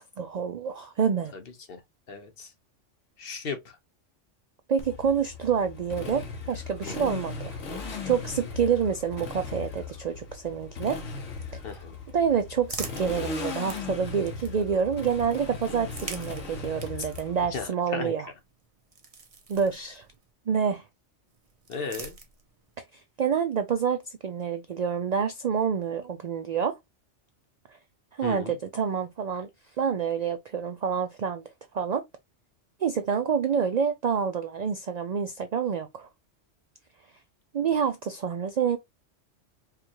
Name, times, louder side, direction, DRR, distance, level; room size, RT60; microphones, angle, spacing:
voice 1, 0.0-1.3 4.7-11.0 11.5-11.6 12.1-18.3 19.5-20.1 20.5-20.8 22.9-26.7 27.7-27.8 28.2-29.5 29.8-31.4 31.7-32.0 32.8-36.1 37.5-38.8, right 7 dB, 75° right, 0.3 m, -28 dB
voice 2, 1.3-1.8 2.1-2.5 3.2-3.8 6.9-7.1 11.6-11.9 17.0-17.1 17.5-18.1 21.7-22.1 28.2-28.5, left 5 dB, 55° left, 1.0 m, -36 dB
Motorcycle, 4.8-17.6, left 4 dB, 90° left, 1.3 m, -38 dB
sound 1, 12.0-14.9 15.7-20.3 21.3-22.8, right 4 dB, 35° right, 0.6 m, -45 dB
4.7 x 2.3 x 2.9 m
omnidirectional pair, 1.2 m